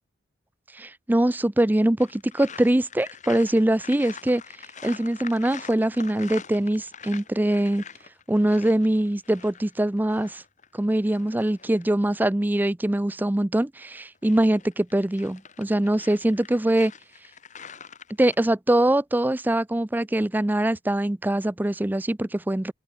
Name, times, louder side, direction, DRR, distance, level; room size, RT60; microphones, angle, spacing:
voice 1, 0.7-4.4 4.8-7.8 8.3-10.4 10.7-16.9 18.2-22.7, right 1 dB, 10° right, 0.4 m, -23 dB
sound 1, 2.0-11.9 14.0-18.4, left 6 dB, 35° left, 5.6 m, -44 dB
open air
head